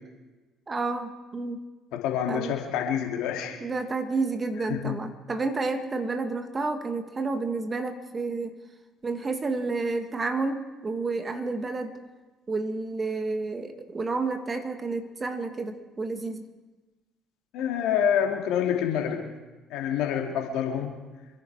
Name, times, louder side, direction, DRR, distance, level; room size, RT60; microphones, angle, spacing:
voice 1, 0.7-1.6 2.3-2.5 3.6-8.6 9.0-12.0 12.5-16.5, right 3 dB, 30° right, 6 dB, 2.0 m, -30 dB
voice 2, 1.9-3.6 4.7-5.0 17.5-19.2 19.7-21.0, left 8 dB, 70° left, 2 dB, 2.5 m, -27 dB
26.5 x 10.5 x 4.7 m, 1.2 s
hypercardioid pair, 55°, 0 cm